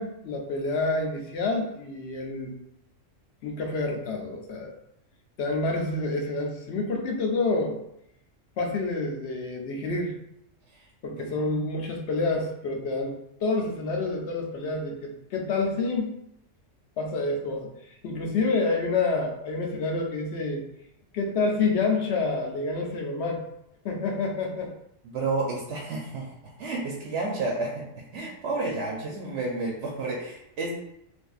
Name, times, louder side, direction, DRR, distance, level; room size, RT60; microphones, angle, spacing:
voice 1, 0.0-2.5 3.4-4.7 5.4-7.8 8.6-10.1 11.0-13.1 13.4-16.2 17.0-17.7 18.0-20.6 21.1-23.4 23.8-24.7, left 3 dB, 65° left, 1 dB, 0.8 m, -28 dB
voice 2, 25.0-26.3 26.6-27.8 28.1-30.7, right 3 dB, 70° right, -2 dB, 0.9 m, -31 dB
3.9 x 2.5 x 2.3 m, 0.80 s
omnidirectional pair, 1.3 m